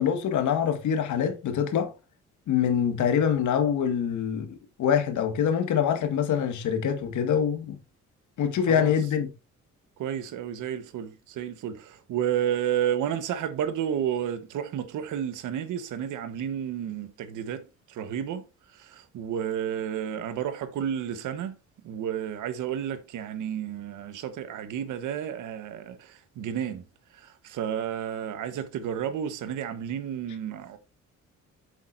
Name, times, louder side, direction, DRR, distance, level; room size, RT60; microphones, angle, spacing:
voice 1, 0.0-1.9 2.5-7.8 8.4-9.3, left 8 dB, 75° left, 1.9 m, -25 dB
voice 2, 10.0-17.6 17.9-18.4 18.8-21.6 21.8-26.8 27.2-30.8, right 9 dB, 85° right, 1.3 m, -31 dB
8.4 x 7.8 x 2.7 m
cardioid pair, 90°, 30 cm